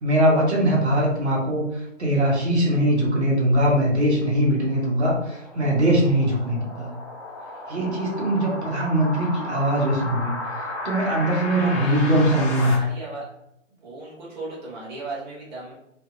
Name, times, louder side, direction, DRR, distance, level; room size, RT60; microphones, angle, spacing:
voice 1, 0.0-6.9 7.7-10.3 10.8-12.7, right 1 dB, 60° right, -3 dB, 1.0 m, -21 dB
sound 1, 4.1-12.7, left 2 dB, 25° left, 0.5 m, -34 dB
voice 2, 11.5-12.1 12.5-13.3 13.7-15.7, right 2 dB, 35° right, -6 dB, 0.8 m, -36 dB
2.7 x 2.5 x 2.4 m, 0.81 s
figure-of-eight pair, 130°, 38 cm